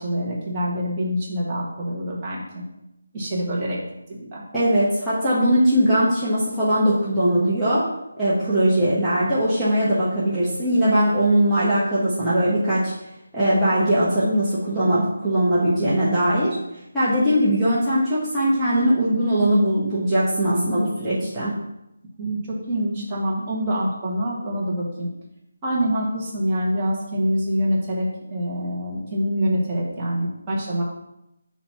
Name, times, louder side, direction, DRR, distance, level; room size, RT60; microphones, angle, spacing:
voice 1, 0.0-2.6 3.1-3.8 4.1-4.4 22.2-22.4 22.7-25.1 25.6-30.8, equal, 20° right, -6 dB, 1.5 m, -25 dB
voice 2, 4.5-7.8 8.2-12.9 13.3-16.6 16.9-21.5, right 1 dB, 5° right, -13 dB, 1.2 m, -20 dB
7.0 x 2.9 x 5.7 m, 0.87 s
figure-of-eight pair, 155°, 0 cm